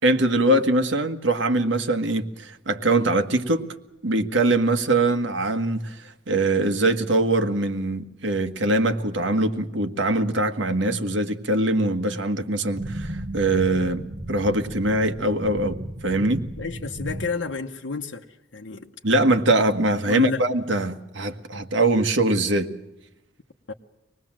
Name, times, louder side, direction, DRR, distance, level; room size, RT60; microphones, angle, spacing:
voice 1, 0.0-3.6 4.0-16.4 19.0-22.7, right 2 dB, 80° right, 1.7 m, -22 dB
sound 1, 12.8-17.3, right 1 dB, 35° right, 1.4 m, -35 dB
voice 2, 16.6-18.2 18.5-18.9 20.1-20.5 23.7-23.8, left 3 dB, 75° left, 1.1 m, -30 dB
25.0 x 19.5 x 7.5 m
head